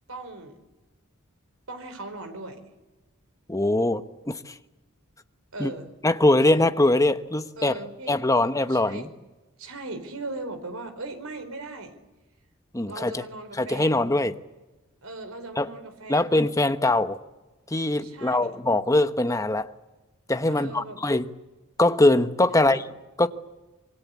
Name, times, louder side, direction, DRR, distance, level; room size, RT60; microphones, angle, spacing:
voice 1, 0.1-0.6 1.7-2.6 5.5-5.9 7.6-9.1 9.6-12.0 12.9-14.0 15.0-16.4 18.0-18.6 20.5-21.0 22.5-22.8, right 2 dB, 85° right, 4.7 m, -39 dB
voice 2, 3.5-4.5 5.6-5.7 6.0-7.7 8.1-9.1 12.7-13.2 13.6-14.3 15.6-15.7 16.1-17.2 17.7-19.7 20.3-21.3 21.8-22.8 23.2-23.3, left 2 dB, 15° left, 1.1 m, -22 dB
26.0 x 24.0 x 8.5 m
head